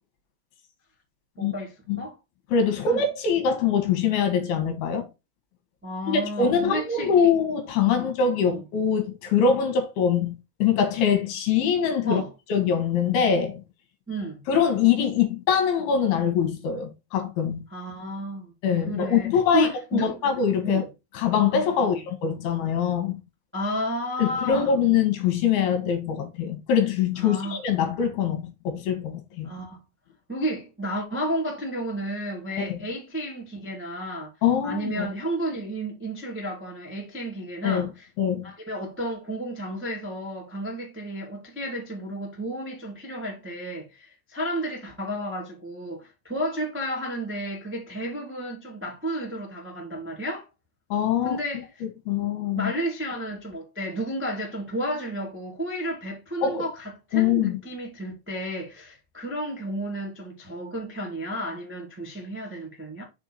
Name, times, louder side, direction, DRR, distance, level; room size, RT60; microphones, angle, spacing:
voice 1, 1.4-2.1 2.8-3.0 5.8-7.3 8.0-8.1 8.4-8.6 12.0-12.3 14.1-14.5 17.7-18.5 18.9-20.2 20.6-20.9 21.8-22.0 23.5-24.8 27.2-27.6 29.4-29.8 30.3-34.3 34.6-38.1 38.4-50.4 51.2-51.6 52.5-63.0, right 1 dB, 10° right, 0.7 m, -32 dB
voice 2, 2.5-5.1 6.1-12.2 12.5-13.6 14.5-17.7 18.6-20.9 21.1-23.2 24.2-29.5 32.7-32.8 34.4-35.1 37.6-37.9 38.2-38.4 50.9-51.6 52.1-52.7 56.4-56.7 57.1-57.6, left 7 dB, 70° left, 3.0 m, -23 dB
6.5 x 4.5 x 4.2 m
omnidirectional pair, 5.0 m